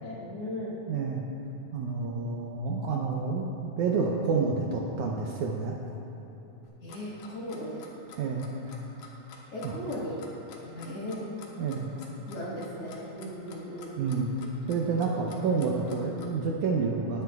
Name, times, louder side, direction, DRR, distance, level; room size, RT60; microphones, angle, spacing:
voice 1, 0.0-0.8 6.8-7.8 9.5-11.3 12.3-14.0, left 1 dB, 55° left, -6 dB, 2.0 m, -37 dB
voice 2, 0.9-1.2 1.7-5.8 8.2-8.8 9.6-9.7 11.6-11.9 14.0-14.3 14.7-17.2, right 4 dB, 75° right, -1 dB, 1.9 m, -29 dB
Clock, 6.6-16.3, left 5 dB, 75° left, 2.5 m, -49 dB
19.0 x 9.3 x 2.4 m, 3.0 s
omnidirectional pair, 4.0 m